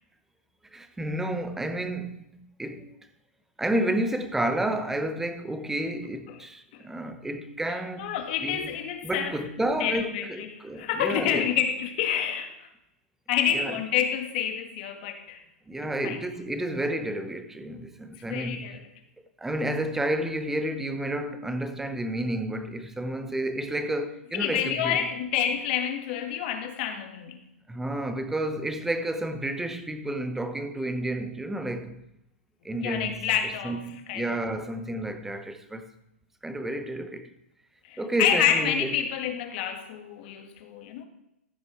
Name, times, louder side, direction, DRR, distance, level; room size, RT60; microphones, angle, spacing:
voice 1, 0.7-2.9 3.6-8.1 8.4-8.7 9.0-11.5 13.5-13.8 15.7-18.6 19.4-25.1 27.7-32.0 32.6-33.2 33.6-35.9 36.4-37.3 38.0-38.9, right 1 dB, 5° right, 0.7 m, -31 dB
voice 2, 7.7-9.4 9.8-12.7 13.3-15.4 16.0-16.2 18.3-18.9 24.3-27.4 32.8-33.8 34.1-34.4 37.8-41.0, left 9 dB, 45° left, 1.7 m, -28 dB
14.5 x 6.5 x 4.4 m
hypercardioid pair, 145°, 7 cm